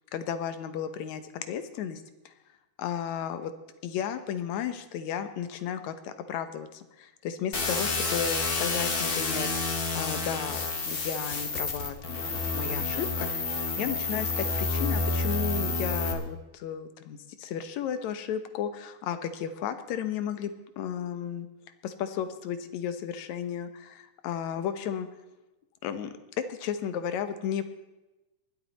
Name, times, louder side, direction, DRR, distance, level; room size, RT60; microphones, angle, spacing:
voice 1, 0.1-2.3 2.8-3.5 3.8-9.5 10.0-20.5 20.8-21.5 21.8-25.1 25.8-27.7, left 8 dB, 75° left, 10 dB, 2.3 m, -34 dB
sound 1, 7.5-16.1, left 3 dB, 35° left, 1.9 m, -29 dB
20.0 x 12.5 x 4.2 m, 1.0 s
omnidirectional pair, 3.4 m